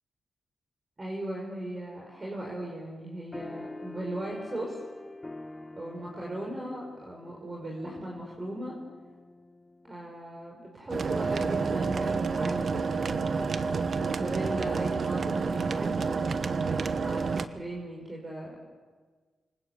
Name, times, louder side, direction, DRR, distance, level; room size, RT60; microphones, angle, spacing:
voice 1, 1.0-4.8 5.8-8.8 9.8-13.5 13.9-16.1 16.9-18.6, right 1 dB, 25° right, -1 dB, 5.4 m, -38 dB
sound 1, 3.3-10.2, left 2 dB, 20° left, 0.8 m, -45 dB
sound 2, 10.9-17.5, right 4 dB, 50° right, 1.4 m, -29 dB
28.5 x 25.0 x 8.4 m, 1.5 s
cardioid pair, 100°, 0 cm